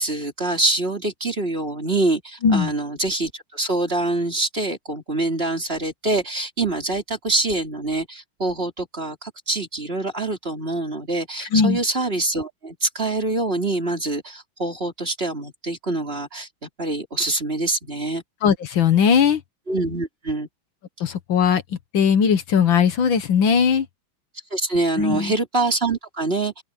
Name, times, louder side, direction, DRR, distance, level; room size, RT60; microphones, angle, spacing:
voice 1, 0.0-18.2 19.7-20.5 24.5-26.5, right 2 dB, 25° right, 3.8 m, -25 dB
voice 2, 18.4-19.4 21.0-21.6 21.9-23.9 25.0-25.3, left 7 dB, 70° left, 1.9 m, -18 dB
open air
omnidirectional pair, 2.2 m